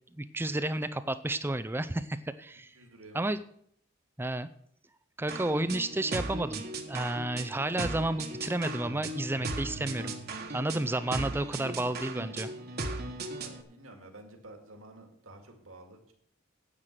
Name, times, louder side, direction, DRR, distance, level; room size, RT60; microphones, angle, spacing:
voice 1, 0.2-2.7 3.1-3.4 4.2-4.5 5.2-10.1 10.5-12.5, right 1 dB, 10° right, 12 dB, 0.4 m, -31 dB
voice 2, 2.7-3.3 13.4-16.1, right 2 dB, 75° right, 3 dB, 2.2 m, -51 dB
sound 1, 5.3-13.6, right 2 dB, 45° right, 1.3 m, -37 dB
9.9 x 9.0 x 6.6 m, 0.67 s
head